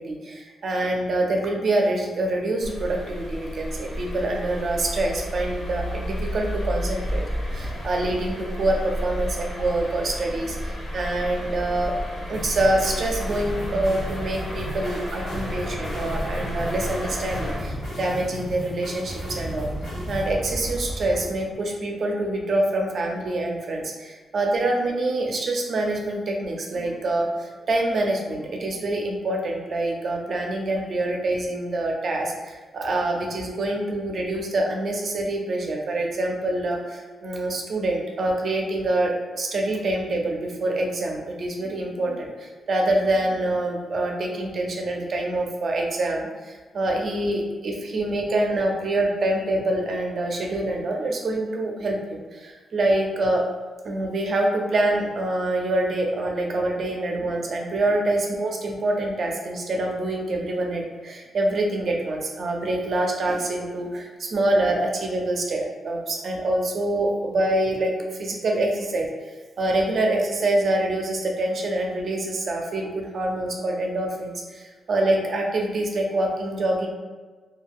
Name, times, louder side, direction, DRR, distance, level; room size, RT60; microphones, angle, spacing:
voice 1, 0.0-10.5 10.9-11.9 12.3-19.7 20.1-53.4 53.8-67.9 68.2-69.1 69.6-76.9, right 1 dB, 55° right, 1 dB, 0.5 m, -25 dB
sound 1, 2.6-17.6, equal, 85° left, 0.8 m, -31 dB
sound 2, 7.0-8.3 9.5-21.8, equal, 35° left, 0.5 m, -39 dB
sound 3, 12.3-20.3, left 1 dB, 60° left, 1.3 m, -37 dB
2.3 x 2.3 x 3.4 m, 1.4 s
cardioid pair, 105°, 0 cm